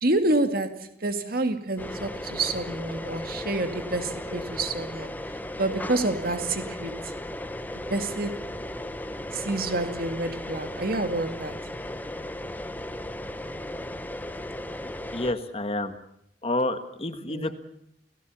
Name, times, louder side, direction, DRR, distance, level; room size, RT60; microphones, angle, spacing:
voice 1, 0.0-5.1 5.6-7.1 7.9-8.4 9.3-11.6 17.3-17.6, right 2 dB, 60° right, 2.2 m, -28 dB
sound 1, 1.8-15.3, left 1 dB, 10° left, 1.0 m, -36 dB
voice 2, 15.1-16.0 16.4-17.6, left 1 dB, 35° left, 1.6 m, -29 dB
29.0 x 18.0 x 7.2 m
head